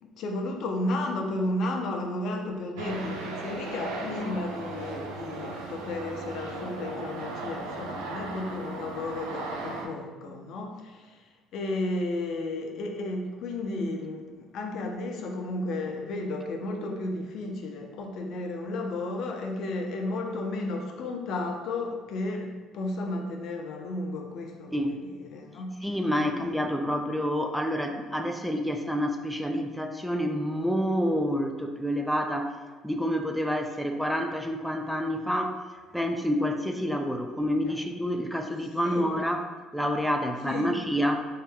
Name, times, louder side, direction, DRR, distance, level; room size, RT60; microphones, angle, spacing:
voice 1, 0.0-11.2 11.5-25.8 26.2-26.7 37.6-37.7 38.8-39.1 40.5-40.7, left 2 dB, 65° left, 2 dB, 0.6 m, -33 dB
sound 1, 2.8-9.9, right 3 dB, 85° right, 0.5 m, -37 dB
voice 2, 25.8-32.6 32.8-35.6 35.9-39.4 39.7-41.2, equal, ahead, 4 dB, 0.4 m, -28 dB
3.7 x 2.8 x 3.5 m, 1.3 s
hypercardioid pair, 65°, 0 cm